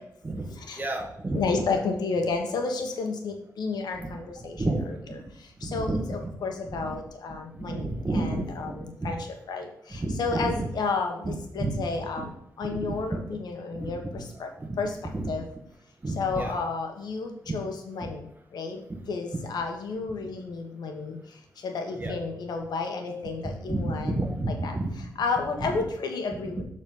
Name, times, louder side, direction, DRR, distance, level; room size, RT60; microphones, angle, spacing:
voice 1, 0.7-1.6 3.9-4.2 4.5-4.8 5.6-6.3 6.6-7.0 7.5-9.1 9.9-10.7 11.2-11.9 12.2-12.3 12.7-13.2 13.7-14.2 14.6-14.8 15.1-15.3 16.0-16.6 17.5-17.6 18.9-19.0 19.3-19.4 21.9-22.1 23.6-25.1 25.6-25.8, right 2 dB, 25° right, 3 dB, 1.5 m, -31 dB
voice 2, 1.3-4.6 5.4-7.8 8.1-12.3 12.6-14.5 14.8-15.0 15.3-15.4 16.2-18.8 19.1-24.2 24.6-24.7 25.2-26.6, left 4 dB, 80° left, 3 dB, 1.2 m, -31 dB
6.8 x 4.1 x 5.3 m, 0.74 s
cardioid pair, 65°, 7 cm